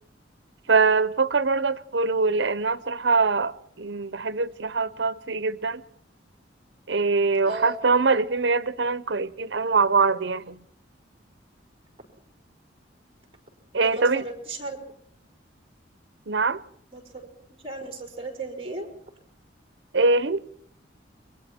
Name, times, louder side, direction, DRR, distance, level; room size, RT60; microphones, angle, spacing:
voice 1, 0.7-5.8 6.9-10.6 13.7-14.3 16.3-16.6 19.9-20.4, right 4 dB, 70° right, 0.9 m, -23 dB
voice 2, 7.5-7.8 13.8-14.8 16.9-17.3 17.6-18.9, right 2 dB, 30° right, 5.2 m, -35 dB
29.5 x 23.0 x 4.5 m
head